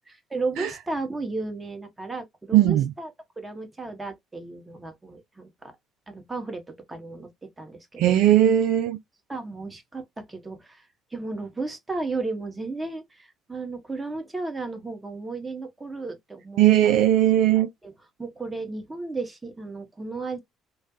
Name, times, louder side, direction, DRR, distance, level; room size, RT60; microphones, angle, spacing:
voice 1, 0.1-3.1 3.4-5.7 6.1-7.3 7.6-8.0 9.3-10.9 11.1-17.0 17.6-17.9 18.2-20.4, right 3 dB, 20° right, 1.3 m, -34 dB
voice 2, 2.5-2.9 8.0-9.0 16.6-17.7, right 12 dB, 70° right, 0.3 m, -18 dB
3.1 x 2.3 x 2.6 m
hypercardioid pair, 55°, 0 cm